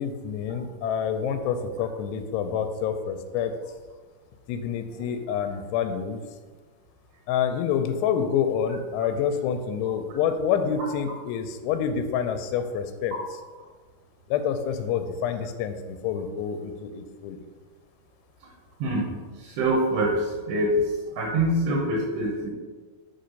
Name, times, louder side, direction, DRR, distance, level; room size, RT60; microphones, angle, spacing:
voice 1, 0.0-3.5 4.5-6.2 7.3-13.1 14.3-17.4, left 7 dB, 90° left, 7 dB, 2.7 m, -27 dB
voice 2, 18.8-19.1 19.4-20.8 21.2-22.5, right 1 dB, 80° right, -2 dB, 3.1 m, -25 dB
6.5 x 4.6 x 5.2 m, 1.4 s
omnidirectional pair, 4.7 m